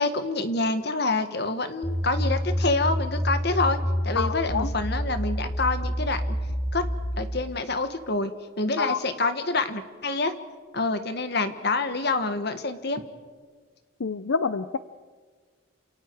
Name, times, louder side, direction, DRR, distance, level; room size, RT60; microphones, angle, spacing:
voice 1, 0.0-3.8 4.0-6.3 6.7-6.8 7.2-8.3 8.6-10.3 10.7-13.0, left 3 dB, 55° left, 9 dB, 1.6 m, -27 dB
sound 1, 1.8-7.1, equal, 20° left, 6.3 m, -28 dB
voice 2, 4.2-4.7 8.8-9.0 14.0-14.8, left 5 dB, 80° left, 12 dB, 0.6 m, -27 dB
28.5 x 28.0 x 4.8 m, 1.5 s
head